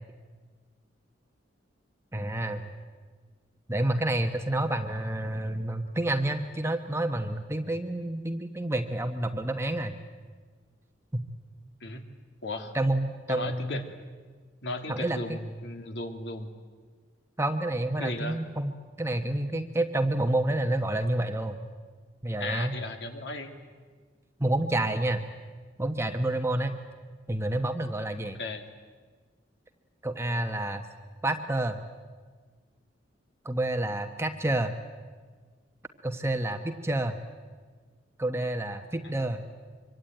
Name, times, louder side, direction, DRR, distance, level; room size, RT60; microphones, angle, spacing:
voice 1, 2.1-2.6 3.7-10.0 11.1-11.2 12.7-13.8 14.9-15.4 17.4-18.7 19.0-21.6 22.2-22.7 24.4-25.3 25.8-26.7 27.3-28.4 30.0-30.8 31.2-31.8 33.4-34.7 36.0-37.2 38.2-39.5, right 1 dB, 15° right, 6 dB, 1.1 m, -29 dB
voice 2, 12.4-12.7 13.3-13.8 14.6-16.5 18.0-18.4 22.4-23.5 28.4-28.7, left 2 dB, 65° left, 6 dB, 2.5 m, -36 dB
25.0 x 24.5 x 9.2 m, 1.5 s
head